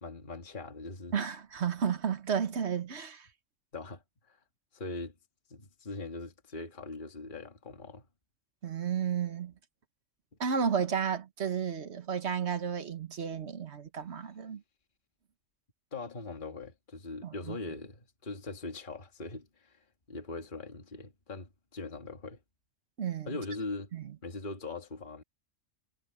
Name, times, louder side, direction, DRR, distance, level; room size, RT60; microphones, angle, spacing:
voice 1, 0.0-1.1 3.7-4.4 4.7-5.2 5.5-8.1 15.9-22.4 23.3-23.9 24.2-25.2, left 3 dB, 40° left, 2.1 m, -41 dB
voice 2, 1.1-3.3 8.6-9.5 10.4-14.6 17.2-17.6 23.0-23.4 23.9-24.1, right 7 dB, 55° right, 1.5 m, -32 dB
omnidirectional pair, 1.4 m